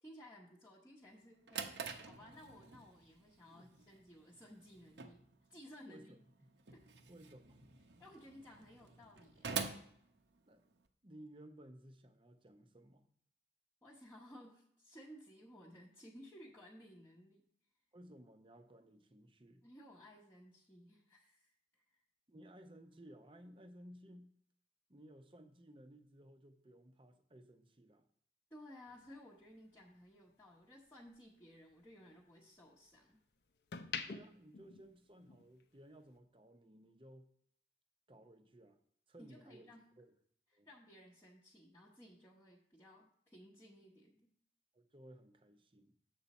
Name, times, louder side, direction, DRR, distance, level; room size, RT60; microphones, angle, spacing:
voice 1, 0.0-1.7 2.1-6.1 6.7-6.8 8.0-9.5 13.8-17.4 19.6-22.0 28.5-33.2 39.2-39.8 40.7-44.3, equal, 15° left, -6 dB, 1.0 m, -58 dB
Drawer open or close, 1.1-10.9, right 6 dB, 80° right, 0.8 m, -47 dB
voice 2, 3.5-3.8 5.9-6.5 7.1-7.6 8.0-8.1 10.5-10.6 11.0-13.1 17.9-19.6 22.3-24.4 24.9-28.0 34.1-37.3 38.1-38.8 39.1-40.1 40.5-40.7 44.7-46.0, right 1 dB, 30° right, 7 dB, 0.7 m, -58 dB
sound 1, 28.9-31.2 31.6-33.0 33.5-35.6 35.9-36.2, left 6 dB, 70° left, 0.6 m, -48 dB
7.9 x 7.0 x 4.2 m, 0.67 s
head